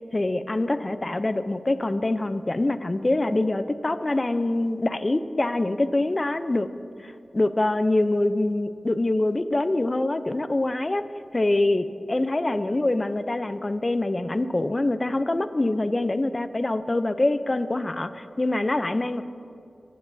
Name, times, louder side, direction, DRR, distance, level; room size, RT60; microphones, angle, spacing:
voice 1, 0.1-6.7 7.0-11.0 11.3-19.2, left 2 dB, 35° left, 11 dB, 0.5 m, -25 dB
19.0 x 9.5 x 2.7 m, 2.5 s
wide cardioid pair, 55°, 0 cm